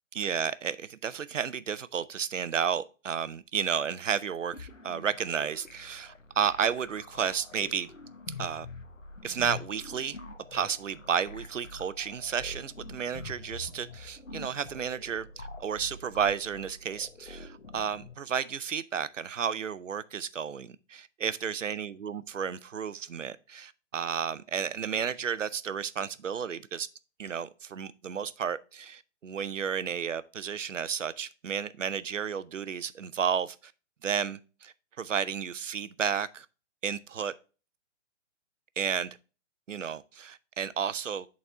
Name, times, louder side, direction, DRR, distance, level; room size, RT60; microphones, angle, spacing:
voice 1, 0.1-7.9 8.4-8.7 9.2-10.2 10.5-26.9 27.2-33.7 34.0-36.5 36.8-37.3 38.8-39.2 39.7-41.3, right 7 dB, 75° right, 0.6 m, -32 dB
sound 1, 4.5-18.1, left 3 dB, 80° left, 1.1 m, -46 dB
7.8 x 4.1 x 3.5 m
figure-of-eight pair, 135°, 38 cm